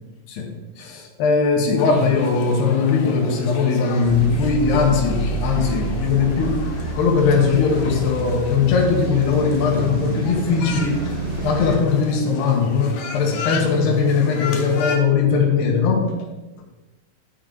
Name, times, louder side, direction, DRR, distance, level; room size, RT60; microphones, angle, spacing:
voice 1, 0.8-11.1 11.4-16.0, left 5 dB, 70° left, 0 dB, 3.0 m, -19 dB
sound 1, 1.8-15.0, left 5 dB, 85° left, 3.4 m, -35 dB
sound 2, 4.0-11.8, right 3 dB, 50° right, 2.7 m, -29 dB
11.0 x 6.2 x 3.9 m, 1.1 s
omnidirectional pair, 5.5 m